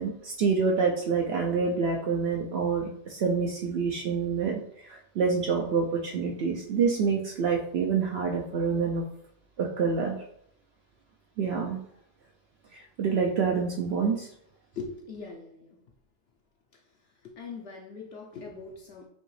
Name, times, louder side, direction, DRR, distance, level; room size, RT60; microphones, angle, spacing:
voice 1, 0.0-9.0 9.6-10.2 11.4-11.8 12.7-14.3, right 5 dB, 65° right, 0 dB, 0.8 m, -27 dB
voice 2, 14.7-15.8 16.7-16.8 17.2-19.1, left 4 dB, 65° left, 1 dB, 0.8 m, -41 dB
5.3 x 2.9 x 3.2 m, 0.70 s
omnidirectional pair, 1.2 m